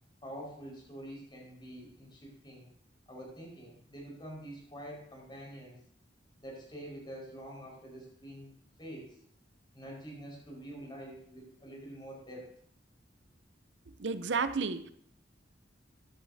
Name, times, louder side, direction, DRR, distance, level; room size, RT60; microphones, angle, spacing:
voice 1, 0.2-2.7 3.1-5.8 6.4-8.5 8.8-9.2 9.7-12.6, right 1 dB, 25° left, 4.9 m, -46 dB
voice 2, 14.0-14.9, right 4 dB, 80° right, 0.6 m, -31 dB
15.0 x 11.5 x 2.7 m
head